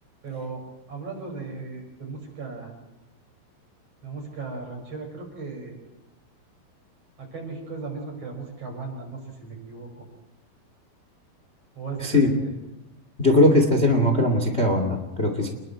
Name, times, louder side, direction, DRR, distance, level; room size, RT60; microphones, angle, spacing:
voice 1, 0.2-2.7 4.0-5.7 7.2-9.9 11.8-12.5 13.3-13.4, right 4 dB, 30° right, 2 dB, 6.7 m, -36 dB
voice 2, 12.0-12.3 13.2-15.5, left 1 dB, 50° left, 5 dB, 0.7 m, -20 dB
29.0 x 21.5 x 4.6 m, 0.99 s
omnidirectional pair, 5.5 m